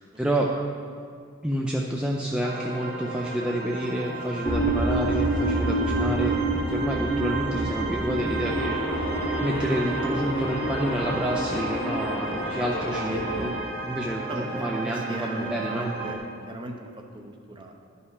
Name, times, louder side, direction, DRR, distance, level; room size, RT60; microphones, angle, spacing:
voice 1, 0.2-0.5 1.4-8.7 9.4-13.5 13.8-15.9, right 1 dB, 5° right, -2 dB, 0.5 m, -29 dB
sound 1, 2.4-16.2, right 3 dB, 75° right, 2.2 m, -34 dB
sound 2, 4.4-12.0, right 2 dB, 25° left, 1.1 m, -28 dB
sound 3, 8.4-13.5, left 1 dB, 75° left, 1.9 m, -32 dB
voice 2, 14.3-16.9 17.1-17.7, right 1 dB, 25° right, 3 dB, 0.8 m, -37 dB
11.0 x 5.5 x 4.8 m, 2.1 s
head